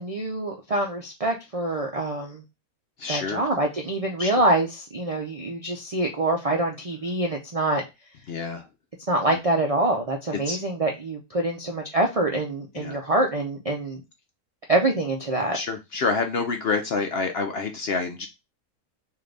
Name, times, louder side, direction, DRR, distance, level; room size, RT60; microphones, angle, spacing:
voice 1, 0.0-2.4 3.1-7.8 9.1-14.0 14.7-15.6, right 2 dB, 60° right, 0 dB, 0.3 m, -25 dB
voice 2, 3.0-3.5 4.2-4.3 8.3-8.7 9.3-9.4 10.4-10.6 12.7-13.0 15.5-18.3, left 4 dB, 60° left, 5 dB, 0.7 m, -28 dB
3.8 x 2.7 x 3.2 m, 0.23 s
omnidirectional pair, 1.5 m